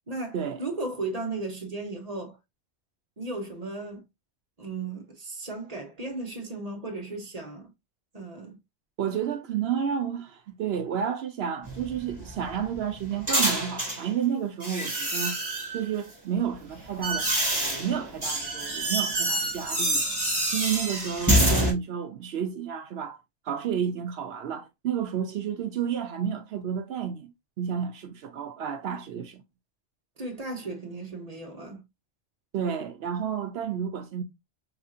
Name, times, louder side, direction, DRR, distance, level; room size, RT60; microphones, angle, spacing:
voice 1, 0.1-2.4 3.2-4.0 4.6-7.7 8.1-8.6 30.2-31.8, right 2 dB, 40° right, 1.0 m, -35 dB
voice 2, 9.0-15.4 15.7-17.3 17.8-20.1 20.5-27.3 27.6-29.4 32.5-34.2, right 8 dB, 70° right, 0.8 m, -31 dB
sound 1, 11.6-14.0 14.6-15.8 16.5-21.7, right 1 dB, 20° right, 1.4 m, -27 dB
4.8 x 2.7 x 2.3 m
omnidirectional pair, 1.1 m